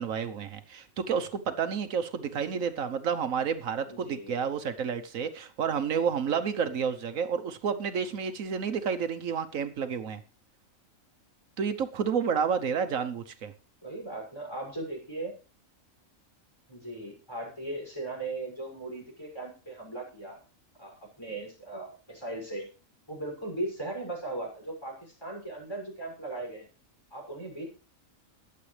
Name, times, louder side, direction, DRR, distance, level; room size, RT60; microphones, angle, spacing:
voice 1, 0.0-10.2 11.6-13.5, right 6 dB, 80° right, 9 dB, 1.4 m, -30 dB
voice 2, 3.9-4.3 13.8-15.3 16.7-20.4 20.8-22.7 23.1-26.7 27.1-27.7, right 2 dB, 20° left, -1 dB, 6.5 m, -38 dB
22.0 x 8.0 x 3.3 m, 0.37 s
omnidirectional pair, 1.4 m